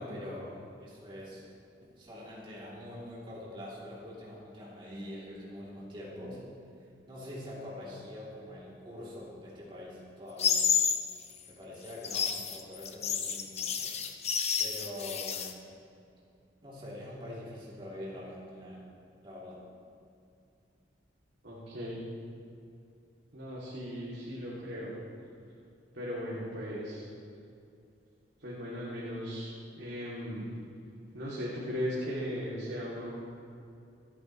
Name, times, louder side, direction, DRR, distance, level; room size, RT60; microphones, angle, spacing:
voice 1, 0.0-1.4 2.0-6.4 7.1-10.7 11.5-14.0 14.6-15.6 16.6-18.8 19.2-19.6, left 1 dB, 30° right, -7 dB, 3.0 m, -44 dB
sound 1, 10.4-11.0 11.9-15.5, left 7 dB, 40° left, 0.9 m, -30 dB
voice 2, 21.4-22.0 23.3-25.0 25.9-27.0 28.4-30.5 31.1-33.1, equal, 75° right, -7 dB, 2.8 m, -37 dB
26.5 x 9.8 x 3.2 m, 2.6 s
head